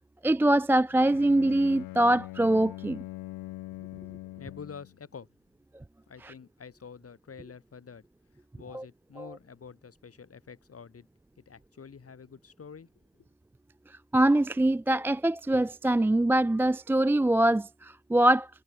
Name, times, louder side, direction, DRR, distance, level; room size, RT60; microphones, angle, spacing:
voice 1, 0.2-3.0 6.2-6.3 8.7-8.8 9.2-9.3 14.1-18.5, right 1 dB, 5° right, 0.3 m, -23 dB
Bowed string instrument, 0.9-5.0, left 17 dB, 80° left, 0.6 m, -42 dB
voice 2, 4.4-5.3 6.1-8.0 8.6-11.1 11.4-12.9, left 6 dB, 45° left, 1.9 m, -47 dB
supercardioid pair, 45°, 34 cm